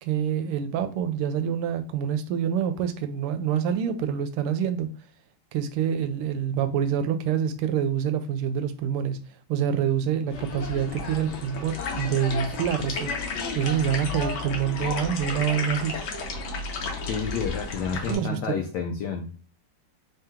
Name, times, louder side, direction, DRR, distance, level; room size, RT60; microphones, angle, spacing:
voice 1, 0.0-4.9 5.5-9.2 9.5-13.1 13.5-16.0 18.0-18.4, right 8 dB, 85° right, 9 dB, 1.5 m, -26 dB
sound 1, 10.3-18.1, left 4 dB, 60° left, 1.2 m, -32 dB
voice 2, 17.0-19.4, left 5 dB, 90° left, 4 dB, 0.9 m, -30 dB
3.6 x 2.8 x 3.5 m, 0.39 s
omnidirectional pair, 2.4 m